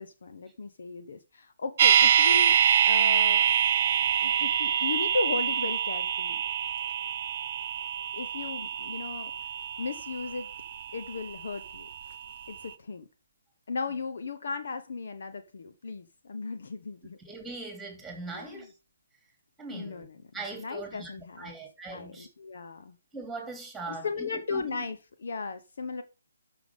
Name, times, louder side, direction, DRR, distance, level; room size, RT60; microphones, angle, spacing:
voice 1, 0.0-3.5 4.2-6.4 8.1-9.3 9.8-10.5 10.9-11.9 12.5-13.1 13.7-17.2 18.3-18.6 19.7-20.2 20.5-21.6 21.9-22.9 23.9-26.0, left 4 dB, 55° left, 1.1 m, -36 dB
sound 1, 1.8-11.8 12.1-12.2, right 9 dB, 40° right, 0.7 m, -25 dB
voice 2, 17.2-18.7 19.6-20.1 20.3-21.1 21.4-22.3 23.1-24.8, right 3 dB, 5° right, 3.0 m, -40 dB
12.0 x 5.9 x 3.8 m
figure-of-eight pair, 140°, 0 cm